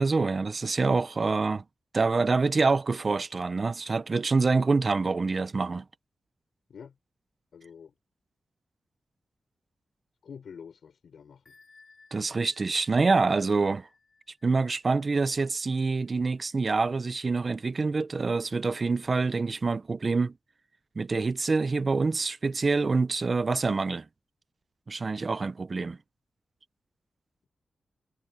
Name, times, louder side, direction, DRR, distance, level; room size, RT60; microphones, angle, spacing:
voice 1, 0.0-1.6 1.9-5.8 12.1-13.9 14.4-20.3 21.0-24.1 24.9-26.0, right 4 dB, 45° right, 0.9 m, -26 dB
voice 2, 7.5-7.9 10.2-11.6, left 7 dB, 80° left, 5.9 m, -47 dB
Bell, 11.5-16.9, left 4 dB, 40° left, 3.1 m, -61 dB
cardioid pair, 65°, 0 cm